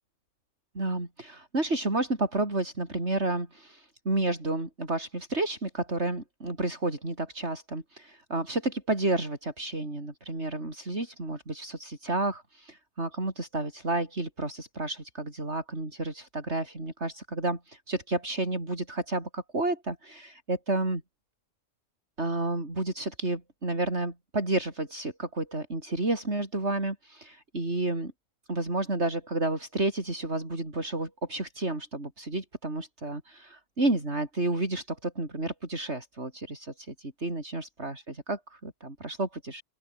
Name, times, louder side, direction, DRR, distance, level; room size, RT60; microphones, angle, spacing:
voice 1, 0.7-21.0 22.2-28.1 28.5-39.6, right 2 dB, 60° right, 5.5 m, -31 dB
open air
omnidirectional pair, 1.3 m